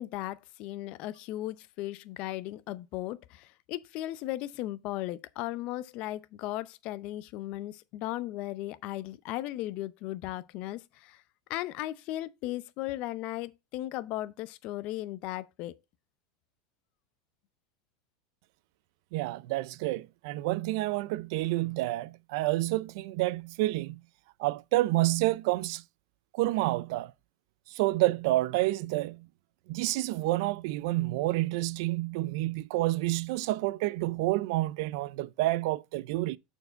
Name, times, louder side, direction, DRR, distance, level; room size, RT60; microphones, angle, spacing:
voice 1, 0.0-11.2 11.5-15.7, left 15 dB, 50° left, 0.6 m, -36 dB
voice 2, 19.1-24.0 24.4-25.8 26.4-27.1 27.7-29.2 29.7-36.4, right 18 dB, 65° right, 0.4 m, -29 dB
6.7 x 4.6 x 5.1 m
supercardioid pair, 135°, 2 cm